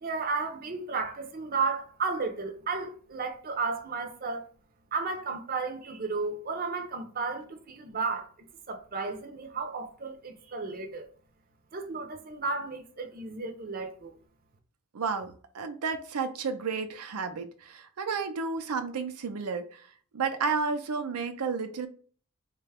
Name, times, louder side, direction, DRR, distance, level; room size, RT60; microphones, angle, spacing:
voice 1, 0.0-4.5 4.9-8.3 8.7-11.1 11.7-14.2, right 4 dB, 40° right, 0.5 m, -33 dB
voice 2, 14.9-19.9 20.1-21.9, right 5 dB, 85° right, 0.5 m, -32 dB
3.8 x 2.2 x 3.3 m
head